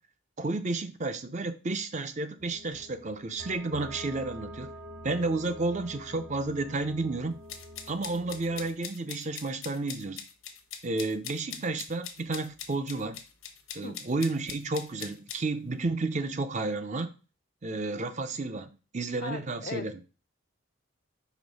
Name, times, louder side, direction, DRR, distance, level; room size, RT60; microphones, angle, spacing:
voice 1, 0.4-4.7 5.0-7.4 7.9-10.2 10.8-13.2 13.7-17.1 17.6-19.9, right 3 dB, 35° right, 0.6 m, -31 dB
sound 1, 2.4-8.7, equal, 90° right, 2.1 m, -46 dB
sound 2, 7.5-15.4, left 8 dB, 85° left, 1.0 m, -42 dB
voice 2, 19.2-20.1, left 4 dB, 45° left, 0.5 m, -39 dB
5.2 x 3.5 x 5.3 m
head